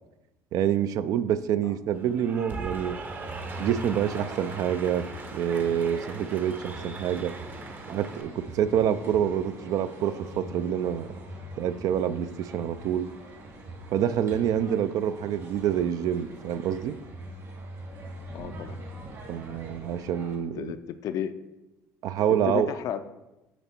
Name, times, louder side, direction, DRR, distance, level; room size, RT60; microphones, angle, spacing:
voice 1, 0.5-3.0 3.6-7.3 7.9-11.2 11.6-13.1 13.9-17.0 19.3-20.7 22.0-22.7, right 9 dB, 60° right, 13 dB, 0.4 m, -27 dB
Cheering / Applause, 1.9-8.2, right 3 dB, 25° right, 0.7 m, -41 dB
sound 1, 3.1-20.4, right 1 dB, 40° right, 1.6 m, -42 dB
voice 2, 18.3-18.8 20.6-21.3 22.3-23.0, left 10 dB, 55° left, 10 dB, 0.4 m, -33 dB
7.1 x 4.0 x 4.4 m, 0.99 s
cardioid pair, 110°, 7 cm